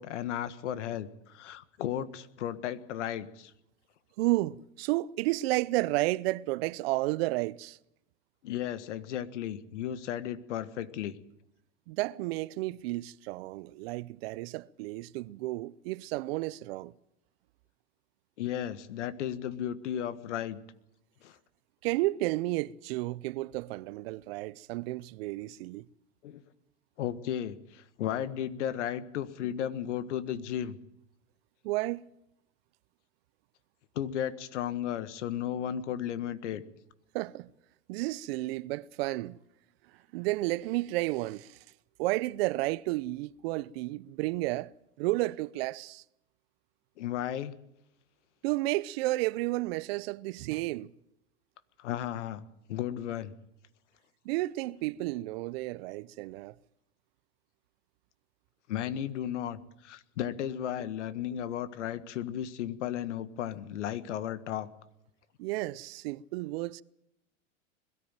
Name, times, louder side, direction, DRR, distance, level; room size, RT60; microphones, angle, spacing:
voice 1, 0.0-3.5 8.4-11.2 18.4-20.6 21.2-21.4 26.2-26.4 27.0-30.8 34.0-36.6 47.0-47.5 51.8-52.4 52.7-53.3 58.7-64.7, left 10 dB, 70° left, 1.7 m, -34 dB
voice 2, 4.2-7.8 11.9-16.9 21.8-25.9 31.6-32.0 37.1-37.5 37.9-39.4 40.1-41.6 42.0-44.7 45.0-46.0 48.4-50.9 54.2-56.5 65.4-66.8, right 19 dB, 55° right, 0.7 m, -32 dB
21.5 x 14.0 x 9.0 m
hypercardioid pair, 115°, 36 cm